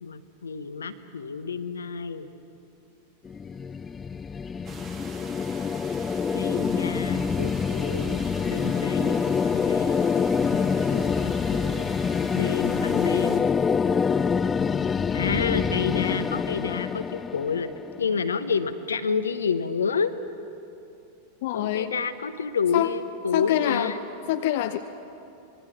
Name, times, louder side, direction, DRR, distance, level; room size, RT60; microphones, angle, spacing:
voice 1, 0.0-2.3 6.3-8.2 8.5-10.0 10.5-11.9 12.3-13.5 15.1-17.7 18.0-20.1 21.5-24.0, left 5 dB, 70° left, 11 dB, 1.0 m, -29 dB
sound 1, 3.3-18.3, left 6 dB, 20° left, 0.4 m, -26 dB
sound 2, 4.6-13.4, right 5 dB, 30° right, 2.3 m, -44 dB
voice 2, 21.4-22.0 22.7-22.9 23.3-23.9 24.3-24.8, left 13 dB, 50° left, 8 dB, 0.7 m, -25 dB
25.5 x 22.0 x 5.9 m, 2.9 s
figure-of-eight pair, 90°, 0 cm